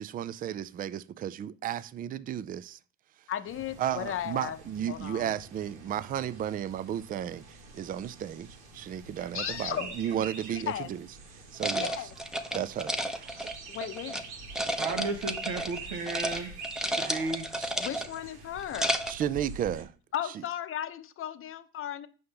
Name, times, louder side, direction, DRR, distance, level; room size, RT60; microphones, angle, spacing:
voice 1, 0.0-2.8 3.8-8.5 8.7-11.0 11.5-11.9 12.5-13.5 17.0-18.0 19.1-19.9, right 10 dB, 25° right, 0.3 m, -34 dB
voice 2, 3.3-4.6 4.9-5.3 9.3-9.9 10.5-10.9 11.8-12.1 13.7-14.2 17.8-19.0 20.1-22.1, left 10 dB, 40° left, 0.8 m, -35 dB
sound 1, 3.5-19.8, right 3 dB, 90° right, 1.8 m, -46 dB
sound 2, 11.6-14.2 14.5-15.8 16.0-16.4 16.6-18.2 18.6-19.2, equal, ahead, 0.7 m, -32 dB
voice 3, 14.8-16.5 17.0-17.5, right 3 dB, 70° right, 1.1 m, -34 dB
7.8 x 5.6 x 3.3 m
supercardioid pair, 95°, 34 cm